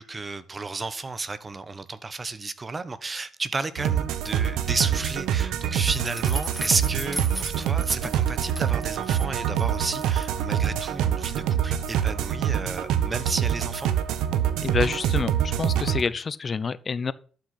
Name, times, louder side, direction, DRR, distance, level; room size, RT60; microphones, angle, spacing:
voice 1, 0.0-13.9, right 3 dB, 30° right, 1.1 m, -32 dB
sound 1, 3.8-16.0, right 9 dB, 90° right, 1.0 m, -25 dB
sound 2, 5.9-9.2 9.6-10.3, right 1 dB, 10° right, 1.9 m, -36 dB
voice 2, 14.6-17.1, left 5 dB, 40° left, 0.7 m, -28 dB
12.0 x 6.3 x 5.8 m
cardioid pair, 90°, 0 cm